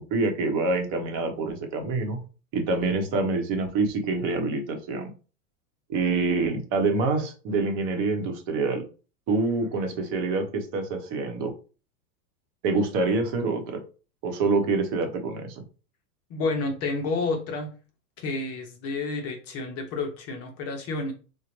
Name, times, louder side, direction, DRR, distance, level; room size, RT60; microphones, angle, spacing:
voice 1, 0.1-2.2 2.5-5.1 5.9-8.8 9.3-11.5 12.6-13.8 14.2-15.6, right 3 dB, 40° right, 4 dB, 0.9 m, -26 dB
voice 2, 16.3-17.7 18.2-21.1, left 3 dB, 30° left, 4 dB, 0.5 m, -30 dB
3.9 x 2.2 x 2.9 m, 0.35 s
hypercardioid pair, 115°, 48 cm